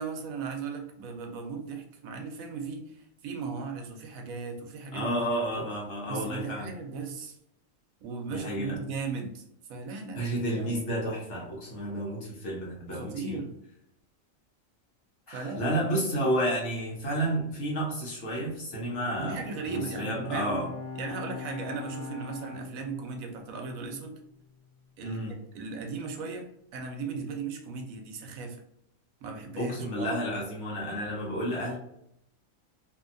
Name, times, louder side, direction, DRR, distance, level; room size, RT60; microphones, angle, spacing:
voice 1, 0.0-5.3 6.1-7.4 8.0-9.4 9.7-10.3 10.5-10.8 12.9-13.5 15.3-15.7 19.2-20.6 20.9-24.2 25.0-26.5 26.7-28.6 29.2-30.2, right 4 dB, 80° right, 4 dB, 1.0 m, -37 dB
voice 2, 4.9-6.7 8.3-8.8 10.1-13.4 15.3-20.7 25.0-25.3 29.6-31.8, right 1 dB, 60° left, -4 dB, 1.2 m, -31 dB
Bowed string instrument, 18.8-24.3, left 4 dB, 90° left, 1.2 m, -42 dB
2.7 x 2.7 x 2.5 m, 0.78 s
omnidirectional pair, 1.4 m